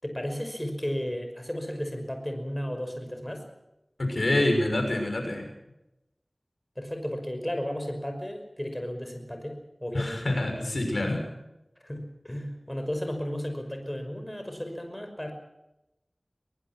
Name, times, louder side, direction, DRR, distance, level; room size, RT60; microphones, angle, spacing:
voice 1, 0.0-3.4 6.8-10.3 10.6-10.7 11.8-15.3, equal, 15° left, 5 dB, 5.8 m, -34 dB
voice 2, 4.0-5.5 9.9-11.2, left 1 dB, 80° left, 3 dB, 6.3 m, -26 dB
23.5 x 21.5 x 6.2 m, 0.89 s
wide cardioid pair, 45°, 0 cm